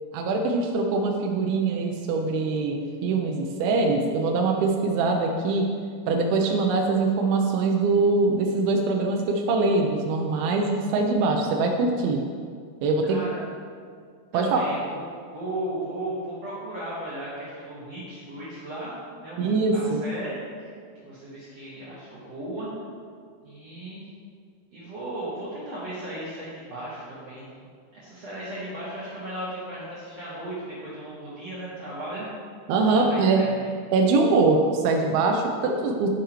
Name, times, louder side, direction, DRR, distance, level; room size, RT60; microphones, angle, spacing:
voice 1, 0.1-5.7 6.1-12.2 12.8-13.2 14.3-14.7 19.4-20.0 32.7-33.4 33.9-36.1, right 3 dB, 80° right, 1 dB, 2.3 m, -23 dB
voice 2, 13.0-13.4 14.3-15.0 15.3-20.7 21.0-22.7 23.4-24.0 24.7-27.5 27.9-32.3 32.9-33.7, right 1 dB, 50° right, -10 dB, 2.1 m, -36 dB
10.5 x 9.6 x 3.1 m, 2.1 s
omnidirectional pair, 5.0 m